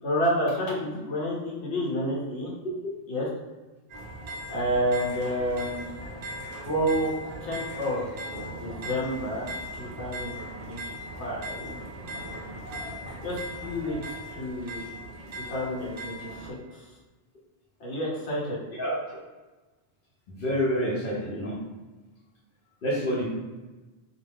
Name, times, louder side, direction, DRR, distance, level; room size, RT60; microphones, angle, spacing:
voice 1, 0.0-2.5 3.1-3.3 4.5-5.9 6.5-7.1 7.4-8.1 8.4-9.5 9.8-10.8 11.2-11.8 13.2-14.0 14.3-14.9 15.5-16.6 17.8-18.6, equal, 90° left, -6 dB, 1.1 m, -29 dB
sound 1, 3.9-16.5, equal, 50° right, 0.5 m, -39 dB
voice 2, 20.3-21.6 22.8-23.2, equal, 60° left, -8 dB, 0.8 m, -27 dB
2.4 x 2.2 x 3.3 m, 1.2 s
omnidirectional pair, 1.1 m